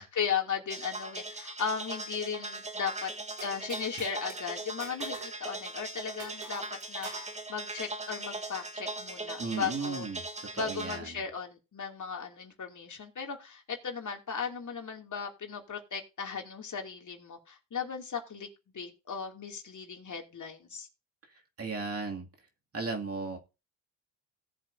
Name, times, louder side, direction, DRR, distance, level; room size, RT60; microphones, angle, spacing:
voice 1, 0.0-3.1 3.4-6.6 6.9-7.2 7.5-10.1 10.5-18.5 18.7-20.9, left 6 dB, 45° left, 2 dB, 2.7 m, -36 dB
sound 1, 0.7-11.0, right 2 dB, 15° right, 1.3 m, -40 dB
sound 2, 3.4-4.4 4.8-5.4 5.6-5.7 6.2-7.3, right 4 dB, 80° right, 6.0 m, -45 dB
voice 2, 9.4-10.2 10.5-11.1 21.6-22.3 22.7-23.4, right 4 dB, 35° right, 1 dB, 2.5 m, -35 dB
17.5 x 7.6 x 2.7 m, 0.29 s
supercardioid pair, 70°, 43 cm